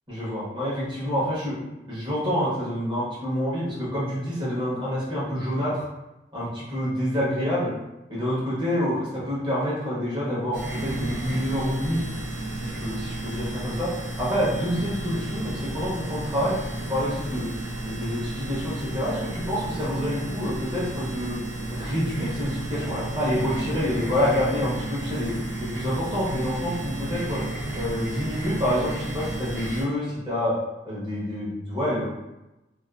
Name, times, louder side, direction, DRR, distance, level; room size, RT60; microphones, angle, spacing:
voice 1, 0.1-1.6 1.9-5.8 6.3-7.7 8.1-12.0 12.6-13.9 14.2-16.5 16.9-17.5 17.8-21.4 21.7-25.3 25.6-27.4 27.7-30.5 30.9-32.0, equal, 25° right, -8 dB, 0.8 m, -27 dB
sound 1, 10.5-29.8, right 1 dB, 60° right, 0.7 m, -32 dB
2.3 x 2.3 x 2.3 m, 0.99 s
head